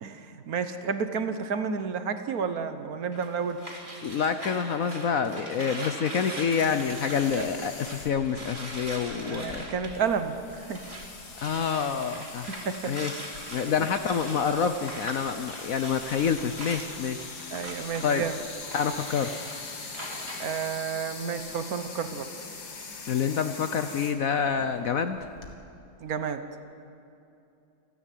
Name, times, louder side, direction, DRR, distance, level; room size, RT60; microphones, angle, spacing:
voice 1, 0.0-3.6 7.3-7.7 9.2-10.8 12.6-12.9 13.8-13.9 17.5-18.4 20.4-22.3 26.0-26.4, right 6 dB, 50° right, 9 dB, 1.3 m, -31 dB
sound 1, 3.1-11.1 11.3-20.6, right 1 dB, 10° right, 3.3 m, -42 dB
voice 2, 4.0-9.7 11.4-12.5 12.9-13.1 13.5-17.2 18.0-18.2 18.7-19.3 23.0-25.2, left 6 dB, 75° left, 9 dB, 0.8 m, -27 dB
sound 2, 6.6-25.5, left 4 dB, 50° left, 2.3 m, -43 dB
28.5 x 10.5 x 9.3 m, 2.7 s
omnidirectional pair, 2.3 m